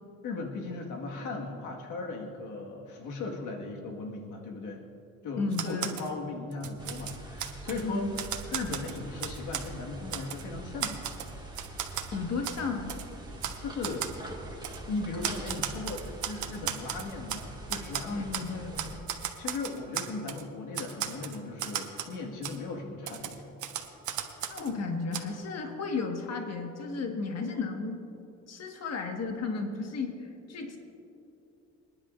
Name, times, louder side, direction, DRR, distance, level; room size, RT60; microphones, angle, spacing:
voice 1, 0.2-4.8 5.2-8.2 8.5-11.0 13.6-14.1 14.9-18.3 19.4-23.3, left 3 dB, 90° left, 1 dB, 1.6 m, -37 dB
voice 2, 5.4-6.0 7.8-8.1 12.1-12.9 18.1-19.0 24.5-28.0 28.5-30.8, left 4 dB, 55° left, 3 dB, 1.5 m, -34 dB
Typewriter, 5.5-6.1 6.5-7.8 8.2-9.7 10.1-10.4 10.8-12.1 12.4-12.6 12.9-13.0 13.4-13.6 13.8-14.2 14.6-14.8 15.2-17.4 17.7-18.5 18.8-20.4 20.7-22.2 22.4-22.6 23.1-24.7 25.1-25.2, right 10 dB, 75° right, 1.1 m, -35 dB
sound 1, 6.8-19.0, right 1 dB, 15° right, 1.8 m, -44 dB
26.5 x 10.5 x 2.5 m, 2.8 s
cardioid pair, 90°, 30 cm